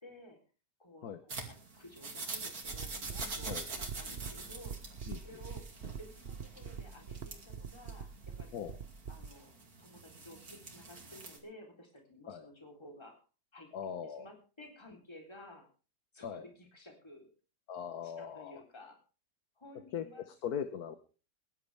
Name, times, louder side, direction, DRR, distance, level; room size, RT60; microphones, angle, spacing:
voice 1, 0.0-0.4 0.8-4.8 5.2-5.7 6.0-8.6 9.1-9.5 9.8-13.2 13.5-13.7 14.0-15.7 16.1-17.3 18.0-19.0 19.6-20.3, left 1 dB, 15° left, 1 dB, 3.7 m, -54 dB
sound 1, 1.3-11.4, right 3 dB, 60° right, 3.1 m, -45 dB
sound 2, 2.6-9.3, right 6 dB, 45° right, 1.0 m, -44 dB
voice 2, 13.7-14.2 16.2-16.4 17.7-18.6 19.9-20.1 20.4-21.0, left 8 dB, 65° left, 9 dB, 1.5 m, -39 dB
22.5 x 11.5 x 3.5 m, 0.36 s
omnidirectional pair, 1.8 m